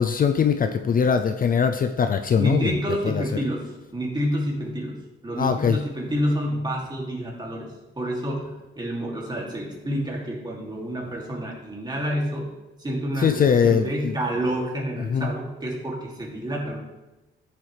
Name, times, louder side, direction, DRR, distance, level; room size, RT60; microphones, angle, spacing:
voice 1, 0.0-2.7 3.0-3.2 5.4-5.8 13.2-14.1 15.1-15.3, left 7 dB, 40° left, 7 dB, 0.5 m, -21 dB
voice 2, 2.3-12.5 12.8-16.8, equal, 20° right, -2 dB, 2.7 m, -29 dB
13.5 x 7.4 x 3.4 m, 1.0 s
cardioid pair, 115°, 21 cm